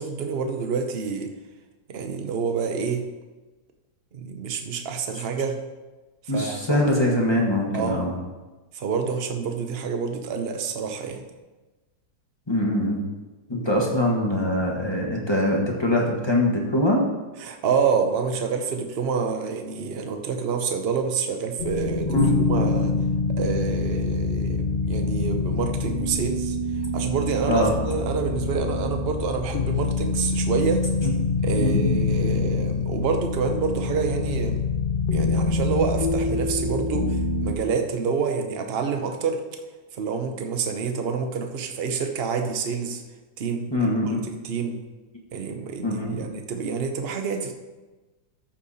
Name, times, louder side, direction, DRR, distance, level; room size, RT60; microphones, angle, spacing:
voice 1, 0.0-1.3 1.9-3.1 4.1-5.6 6.3-6.8 7.7-8.1 8.7-11.2 17.4-22.9 23.4-26.6 26.9-30.8 31.4-34.6 35.1-39.4 40.0-43.0 43.4-43.7 44.2-44.8 45.3-47.5, right 5 dB, 45° right, 5 dB, 0.8 m, -27 dB
voice 2, 6.3-8.1 12.5-13.1 13.5-17.0 22.0-22.3 27.5-27.7 31.0-31.1 31.6-32.0 43.7-44.2 45.8-46.3, left 1 dB, 15° left, -2 dB, 1.2 m, -23 dB
sound 1, 21.6-37.5, left 3 dB, 65° left, 0.5 m, -25 dB
13.5 x 5.7 x 4.2 m, 1.2 s
omnidirectional pair, 2.0 m